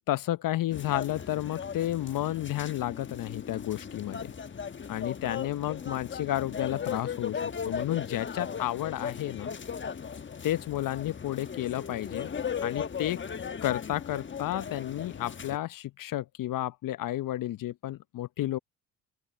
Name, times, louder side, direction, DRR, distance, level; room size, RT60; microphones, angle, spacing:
voice 1, 0.1-4.3 4.9-9.5 10.4-12.3 12.6-13.2 13.6-18.6, left 14 dB, 55° left, 0.9 m, -32 dB
sound 1, 0.7-15.6, left 7 dB, 30° left, 1.2 m, -37 dB
open air
hypercardioid pair, 60°, 39 cm